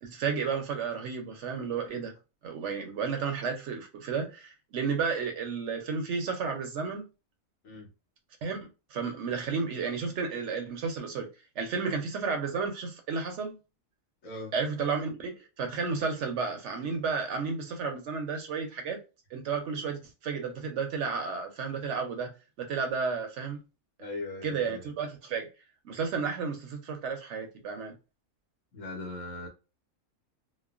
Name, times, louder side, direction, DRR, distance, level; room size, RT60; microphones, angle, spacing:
voice 1, 0.0-2.1 2.4-7.1 8.4-8.6 8.9-11.3 11.6-13.6 14.5-19.0 19.3-22.3 22.6-23.6 24.0-24.1 24.4-25.5 25.8-27.9, right 5 dB, 65° right, 0.8 m, -32 dB
voice 2, 14.2-14.5 24.0-24.8 28.7-29.5, left 2 dB, 70° left, 1.3 m, -39 dB
3.0 x 2.1 x 2.3 m
omnidirectional pair, 1.4 m